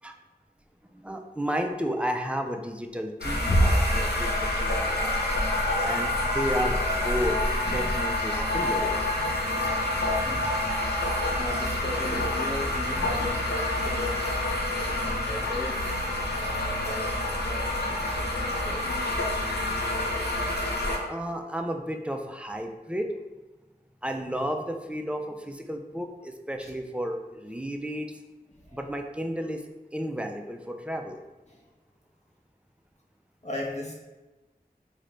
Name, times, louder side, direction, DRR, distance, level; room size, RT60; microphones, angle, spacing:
voice 1, 0.9-5.2 5.8-7.4 7.6-9.1 21.0-23.1 24.0-28.1 28.7-29.6 29.9-31.2, equal, 5° right, 4 dB, 0.3 m, -32 dB
sound 1, 3.2-21.0, left 1 dB, 85° left, 0.5 m, -27 dB
voice 2, 9.2-14.4 14.7-20.6 26.6-26.7 28.5-28.8 31.5-31.6 33.4-33.9, left 2 dB, 45° left, -3 dB, 0.7 m, -39 dB
3.1 x 2.2 x 3.7 m, 1.1 s
wide cardioid pair, 45°, 16 cm